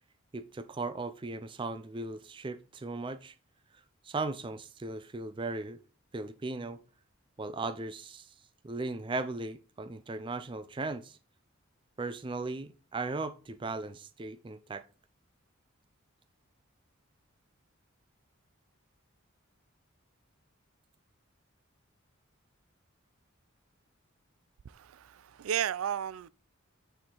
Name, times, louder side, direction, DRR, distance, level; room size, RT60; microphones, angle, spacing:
voice 1, 0.3-3.3 4.0-5.8 6.1-6.8 7.4-8.3 8.6-11.2 12.0-14.9, right 3 dB, 25° right, 0.4 m, -37 dB
voice 2, 24.6-26.3, right 9 dB, 85° right, 0.4 m, -34 dB
8.5 x 4.4 x 3.8 m
head